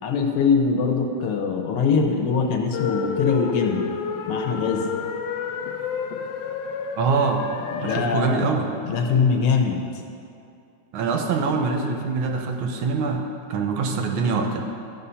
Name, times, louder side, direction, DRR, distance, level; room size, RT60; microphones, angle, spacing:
voice 1, 0.0-3.8 4.3-4.9 7.8-8.4 8.8-9.8, left 5 dB, 90° left, 3 dB, 1.8 m, -22 dB
sound 1, 2.7-8.0, left 6 dB, 75° left, 1.1 m, -29 dB
voice 2, 7.0-7.4 7.8-8.7 10.9-13.2 13.5-14.7, right 4 dB, 80° right, 3 dB, 1.6 m, -24 dB
12.5 x 4.1 x 5.6 m, 2.6 s
omnidirectional pair, 2.4 m